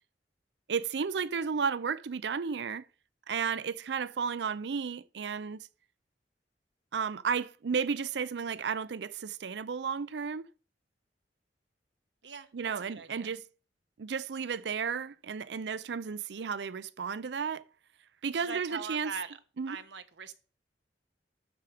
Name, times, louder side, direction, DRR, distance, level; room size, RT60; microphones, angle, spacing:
voice 1, 0.7-2.9 3.3-5.7 6.9-10.4 12.5-13.4 14.0-17.6 18.2-19.1 19.6-19.8, right 6 dB, 70° right, 0.5 m, -33 dB
voice 2, 12.7-13.4 18.3-19.4 19.7-20.3, right 5 dB, 90° right, 1.1 m, -41 dB
12.5 x 5.8 x 4.9 m
head